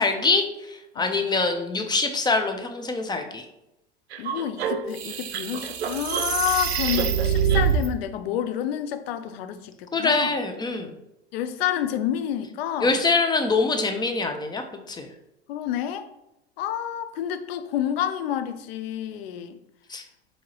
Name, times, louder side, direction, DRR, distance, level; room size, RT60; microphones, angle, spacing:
voice 1, 0.0-3.4 9.9-10.9 12.8-15.1 19.9-20.0, left 3 dB, 15° left, 5 dB, 0.4 m, -24 dB
sound 1, 4.1-7.9, right 7 dB, 85° right, 0.5 m, -25 dB
voice 2, 4.2-10.3 11.3-13.0 15.5-16.1 16.6-19.6, left 10 dB, 70° left, 10 dB, 0.5 m, -29 dB
4.6 x 2.8 x 2.9 m, 0.87 s
hypercardioid pair, 85°, 32 cm